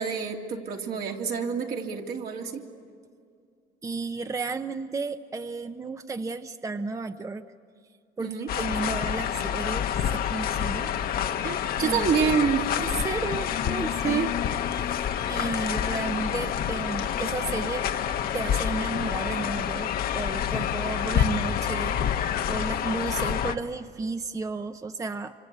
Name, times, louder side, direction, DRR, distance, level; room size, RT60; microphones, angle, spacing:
voice 1, 0.0-2.6 8.2-8.5 11.4-12.7 14.0-14.3, right 6 dB, 65° right, 1 dB, 2.8 m, -27 dB
voice 2, 3.8-7.4 8.2-10.9 11.8-12.1 12.8-14.2 14.7-17.9 18.3-19.9 20.1-25.3, right 3 dB, 20° right, 9 dB, 0.7 m, -33 dB
sound 1, 8.5-23.6, left 9 dB, 60° left, 1.0 m, -28 dB
26.5 x 26.0 x 8.2 m, 2.3 s
cardioid pair, 110°, 17 cm